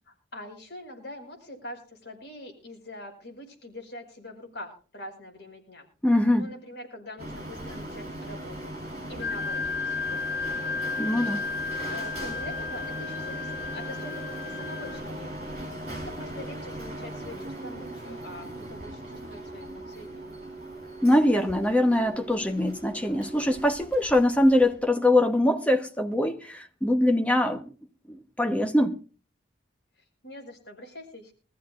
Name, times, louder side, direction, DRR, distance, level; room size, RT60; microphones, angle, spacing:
voice 1, 0.1-5.9 6.4-8.7 9.1-10.7 11.9-15.3 15.8-20.4 30.0-31.3, left 1 dB, 60° left, 5.4 m, -44 dB
voice 2, 6.0-6.5 11.0-11.5 21.0-27.7 28.1-29.0, left 1 dB, 5° left, 1.1 m, -23 dB
Printer, 7.2-24.9, right 1 dB, 35° right, 6.3 m, -39 dB
Wind instrument woodwind instrument, 9.2-15.0, left 4 dB, 30° left, 3.8 m, -33 dB
23.5 x 14.5 x 2.5 m
head